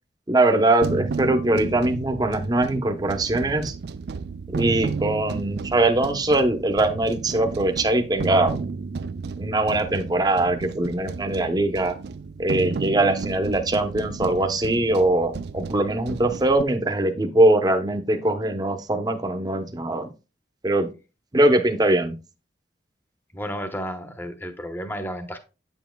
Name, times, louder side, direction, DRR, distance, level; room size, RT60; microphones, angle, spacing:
voice 1, 0.3-3.7 4.5-8.6 9.4-12.0 12.4-20.1 20.6-20.9 21.3-22.1, right 2 dB, 25° right, 0.8 m, -22 dB
sound 1, 0.8-16.6, right 4 dB, 65° right, 0.4 m, -33 dB
voice 2, 23.3-25.4, equal, 10° left, 0.9 m, -32 dB
8.5 x 7.2 x 2.2 m
head